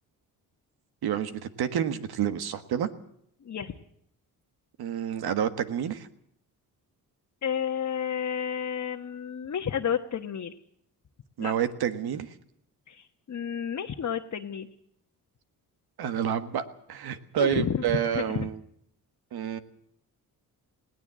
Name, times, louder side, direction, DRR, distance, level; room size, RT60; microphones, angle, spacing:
voice 1, 1.0-2.9 4.8-6.1 11.4-12.3 16.0-18.5 19.3-19.6, right 9 dB, 85° right, 10 dB, 1.6 m, -29 dB
voice 2, 3.4-3.7 7.4-10.6 11.4-11.5 12.9-14.7 17.4-18.5, left 8 dB, 45° left, 2 dB, 1.2 m, -31 dB
20.5 x 17.5 x 7.6 m, 0.70 s
cardioid pair, 100°, 37 cm